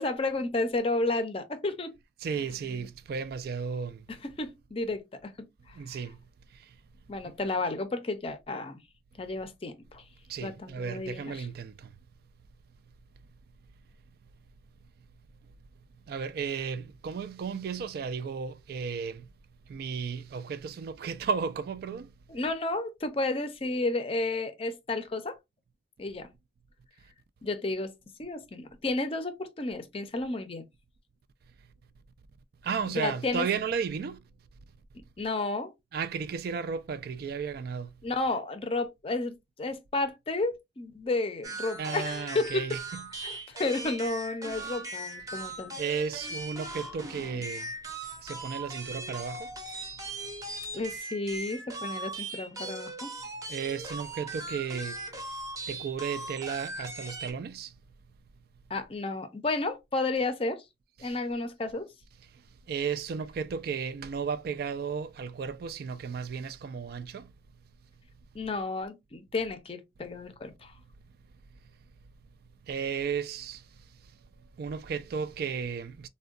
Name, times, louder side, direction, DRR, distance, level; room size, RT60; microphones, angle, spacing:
voice 1, 0.0-1.9 4.2-6.0 7.1-8.8 9.2-10.0 10.4-11.5 22.3-25.4 26.0-26.3 27.4-27.9 28.2-30.6 32.9-33.5 35.2-35.7 38.0-42.6 43.2-45.7 50.7-53.1 58.7-60.6 61.0-61.9 68.3-70.7, left 2 dB, 30° left, 0.5 m, -32 dB
voice 2, 2.2-4.1 5.7-6.2 6.5-6.8 7.3-7.4 10.3-11.9 16.1-19.3 19.7-22.1 32.6-34.2 35.9-38.0 41.7-43.4 45.8-47.7 48.2-49.5 53.5-55.0 55.7-57.7 61.0-61.2 62.7-67.3 72.7-73.6 74.6-76.1, right 6 dB, 55° right, 0.3 m, -34 dB
sound 1, 41.4-57.3, right 2 dB, 20° right, 0.6 m, -39 dB
3.5 x 2.2 x 2.3 m
head